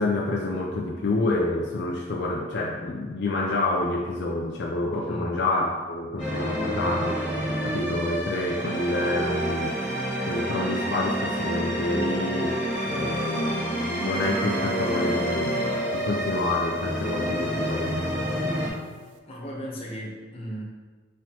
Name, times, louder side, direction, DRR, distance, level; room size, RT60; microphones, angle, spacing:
voice 1, 0.0-7.2 7.6-9.8 10.2-18.0, left 2 dB, 65° left, -1 dB, 0.5 m, -28 dB
sound 1, 6.2-18.7, equal, 10° right, 1.5 m, -29 dB
sound 2, 14.2-19.2, right 1 dB, 85° right, 0.4 m, -34 dB
voice 2, 19.3-20.6, equal, 30° left, -4 dB, 1.0 m, -36 dB
5.5 x 3.0 x 2.9 m, 1.4 s
head